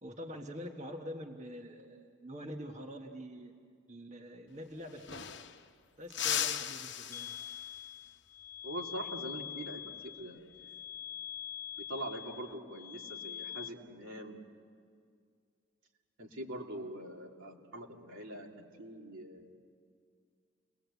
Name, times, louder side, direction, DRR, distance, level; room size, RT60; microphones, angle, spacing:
voice 1, 0.0-3.5 3.9-5.3 6.0-7.4, equal, 35° right, 3 dB, 1.3 m, -45 dB
sound 1, 4.5-4.6 4.8-5.7 6.1-7.9 10.4-10.7 12.1-12.5, left 9 dB, 60° left, 0.9 m, -37 dB
sound 2, 7.1-13.7, left 10 dB, 15° left, 1.1 m, -44 dB
voice 2, 8.6-10.5 11.8-14.4 16.2-19.5, right 1 dB, 90° right, 0 dB, 2.7 m, -43 dB
29.0 x 20.5 x 8.2 m, 2.2 s
head